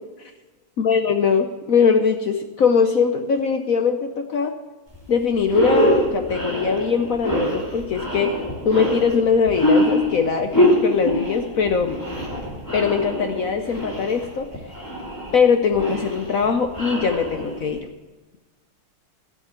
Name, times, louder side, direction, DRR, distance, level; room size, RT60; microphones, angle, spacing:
voice 1, 0.8-4.5 5.1-8.3 8.6-12.0 12.7-14.5 15.3-17.9, left 6 dB, 65° left, 6 dB, 0.8 m, -21 dB
sound 1, 4.9-5.1 5.4-17.8, equal, 10° left, 2.5 m, -24 dB
12.0 x 7.4 x 8.0 m, 1.2 s
omnidirectional pair, 2.3 m